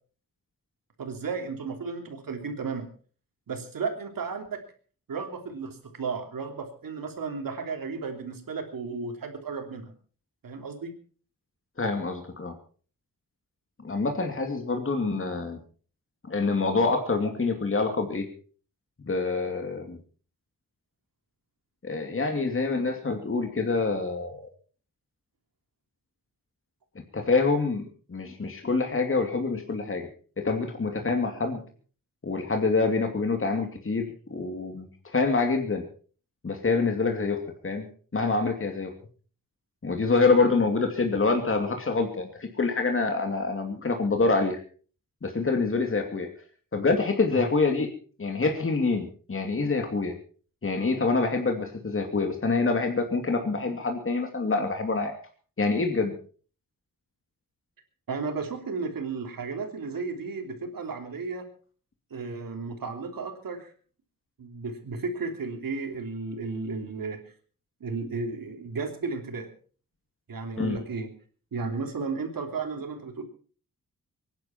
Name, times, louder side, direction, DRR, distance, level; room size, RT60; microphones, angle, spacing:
voice 1, 1.0-2.9 3.5-4.6 5.1-9.9 10.4-10.9 58.1-61.5 62.1-63.7 64.4-67.2 67.8-69.5 70.3-71.1 71.5-73.2, right 4 dB, 75° right, 4 dB, 3.3 m, -34 dB
voice 2, 11.8-12.5 13.8-15.6 16.3-18.3 19.0-20.0 21.8-24.5 27.1-30.1 30.4-31.6 32.2-34.9 35.1-35.8 36.4-37.8 38.1-38.9 39.8-44.6 45.2-46.3 46.7-47.9 48.2-50.1 50.6-55.1 55.6-56.1 70.6-70.8, left 3 dB, 40° left, 4 dB, 2.6 m, -26 dB
23.5 x 11.0 x 4.4 m, 0.41 s
cardioid pair, 75°, 34 cm